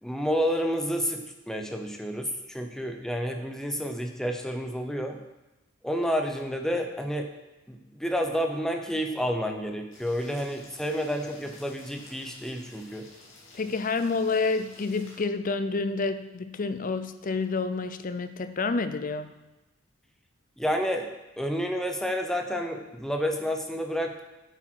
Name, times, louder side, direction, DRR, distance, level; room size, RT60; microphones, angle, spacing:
voice 1, 0.0-5.2 5.8-7.3 7.7-13.1 20.6-21.1 21.4-24.2, equal, 5° left, 3 dB, 0.8 m, -30 dB
sound 1, 9.9-15.2, left 2 dB, 70° left, 2.6 m, -52 dB
voice 2, 13.5-19.3, left 4 dB, 40° left, 11 dB, 0.6 m, -29 dB
9.1 x 7.8 x 4.6 m, 1.0 s
head